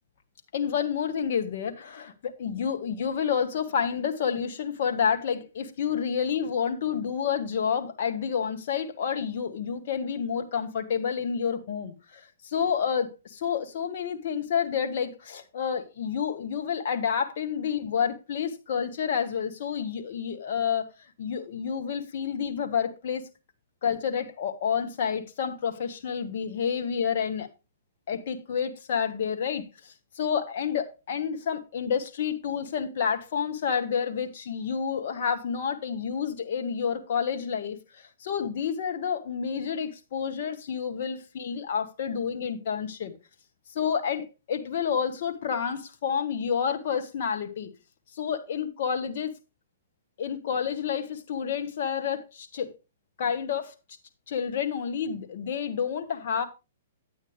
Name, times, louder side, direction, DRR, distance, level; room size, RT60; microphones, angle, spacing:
voice 1, 0.5-20.9 21.2-23.2 23.8-27.5 28.1-43.1 43.7-47.7 48.2-49.3 50.2-52.7 53.2-53.7 54.3-56.4, left 7 dB, 60° left, 1.5 m, -29 dB
9.4 x 8.7 x 3.4 m
hypercardioid pair, 125°, 0 cm